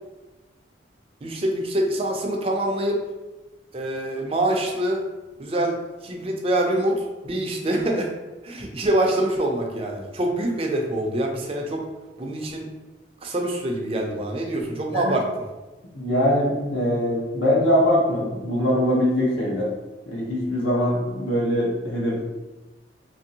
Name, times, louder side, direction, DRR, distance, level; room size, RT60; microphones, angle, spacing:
voice 1, 1.2-3.0 3.7-5.1 5.4-5.8 6.0-8.1 8.4-11.8 12.2-12.7 13.2-15.2, right 1 dB, 30° right, 1 dB, 0.4 m, -25 dB
voice 2, 15.9-19.7 20.1-22.2, equal, 85° left, -3 dB, 0.9 m, -22 dB
3.0 x 2.6 x 2.7 m, 1.1 s
head